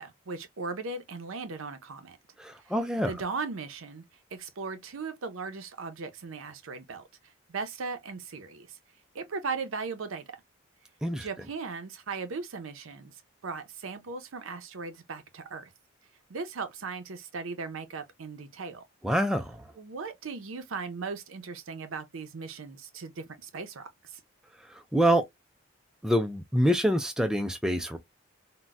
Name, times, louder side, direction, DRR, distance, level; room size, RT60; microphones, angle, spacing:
voice 1, 0.0-2.2 2.6-4.0 4.3-7.0 7.5-8.8 9.1-10.4 11.2-15.7 16.3-18.8 19.8-24.2, right 4 dB, 85° right, 0.6 m, -38 dB
voice 2, 2.4-3.1 11.0-11.3 19.0-19.6 24.9-25.2 26.0-28.0, equal, 5° right, 0.3 m, -26 dB
3.9 x 2.2 x 2.2 m
head